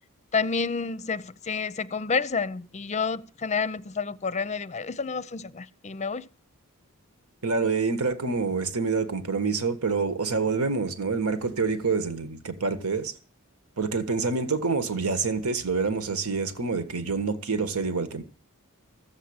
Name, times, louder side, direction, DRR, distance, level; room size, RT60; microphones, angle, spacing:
voice 1, 0.3-6.3, left 5 dB, 30° left, 0.6 m, -29 dB
voice 2, 7.4-13.1 13.8-18.2, right 4 dB, 75° right, 1.5 m, -27 dB
15.0 x 7.3 x 8.7 m
head